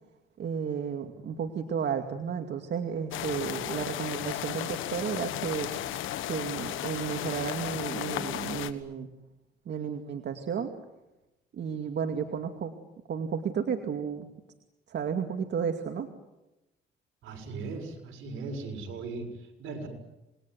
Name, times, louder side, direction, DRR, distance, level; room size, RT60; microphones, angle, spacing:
voice 1, 0.4-5.7 6.3-9.1 9.7-10.7 11.5-12.7 13.1-14.3 14.9-16.1, right 7 dB, 60° right, 5 dB, 2.4 m, -32 dB
sound 1, 3.1-8.7, left 12 dB, 90° left, 1.6 m, -34 dB
voice 2, 17.2-19.9, right 3 dB, 80° right, 3 dB, 6.6 m, -38 dB
27.5 x 21.0 x 9.5 m, 0.96 s
cardioid pair, 90°, 20 cm